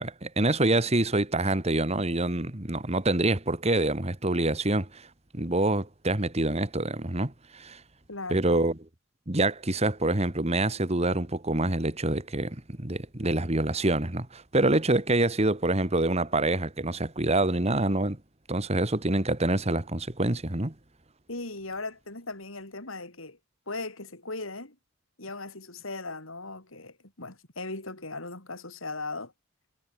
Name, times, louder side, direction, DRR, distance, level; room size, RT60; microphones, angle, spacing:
voice 1, 0.0-5.1 5.3-7.8 8.3-8.7 9.3-18.2 18.5-20.7, right 2 dB, 30° right, 2.0 m, -26 dB
voice 2, 8.1-8.5 21.3-23.4 23.7-24.8 25.2-29.3, left 3 dB, 85° left, 6.6 m, -38 dB
head